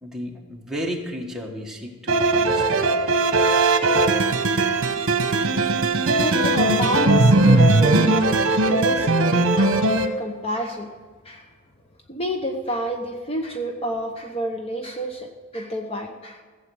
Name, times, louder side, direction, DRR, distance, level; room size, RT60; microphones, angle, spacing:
voice 1, 0.0-2.9, equal, ahead, -1 dB, 1.4 m, -33 dB
sound 1, 2.1-10.1, right 2 dB, 60° right, 1.0 m, -19 dB
voice 2, 6.2-10.9 11.2-11.5 12.1-16.4, equal, 25° left, 3 dB, 0.8 m, -29 dB
15.5 x 8.0 x 6.3 m, 1.5 s
head